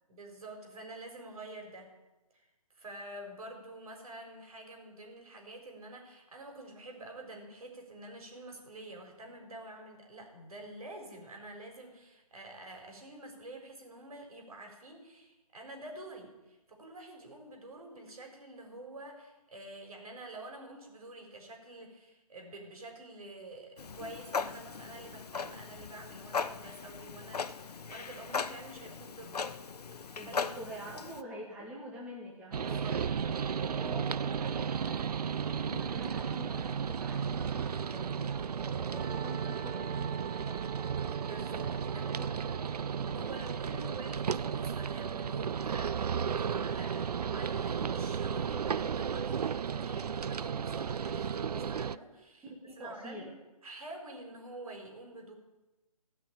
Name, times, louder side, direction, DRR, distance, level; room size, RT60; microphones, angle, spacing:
voice 1, 0.1-1.9 2.3-2.4 2.7-29.5 29.9-30.4 30.9-31.2 32.6-33.0 41.2-42.1 42.5-42.6 43.1-52.5 52.8-53.3 53.6-55.3, right 2 dB, 65° right, 2 dB, 4.1 m, -48 dB
Clock, 23.8-31.2, left 5 dB, 85° left, 0.7 m, -38 dB
voice 2, 30.2-35.1 35.4-40.7 41.6-41.7 42.1-42.4 43.0-43.3 43.7-43.9 52.4-53.4, equal, 5° right, -3 dB, 1.2 m, -47 dB
sound 1, 32.5-52.0, right 7 dB, 85° right, 0.4 m, -34 dB
Wind instrument woodwind instrument, 39.0-43.6, right 10 dB, 35° right, 3.0 m, -46 dB
15.0 x 5.9 x 8.7 m, 1.1 s
hypercardioid pair, 160°, 20 cm